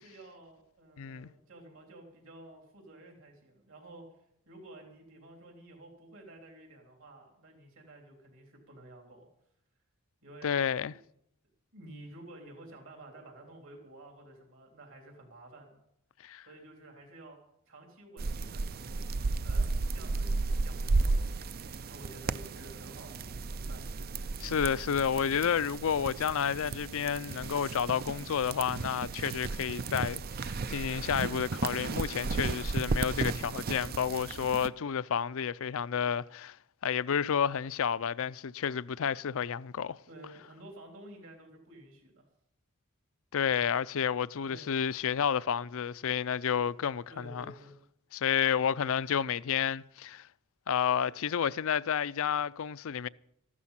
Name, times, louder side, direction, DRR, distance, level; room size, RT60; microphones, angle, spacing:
voice 1, 0.0-4.0 4.5-9.3 10.2-11.0 11.7-15.8 16.5-17.4 17.7-19.0 19.4-21.4 21.9-23.9 40.1-42.2 44.5-44.7 47.1-47.8, right 1 dB, 65° right, 3.6 m, -51 dB
voice 2, 1.0-1.3 10.4-10.9 16.2-16.5 24.4-36.6 36.8-40.0 43.3-47.5 48.1-50.3 50.7-53.1, left 7 dB, 65° left, 0.5 m, -30 dB
sound 1, 18.2-34.7, right 3 dB, 45° right, 0.5 m, -34 dB
14.0 x 12.5 x 5.8 m
head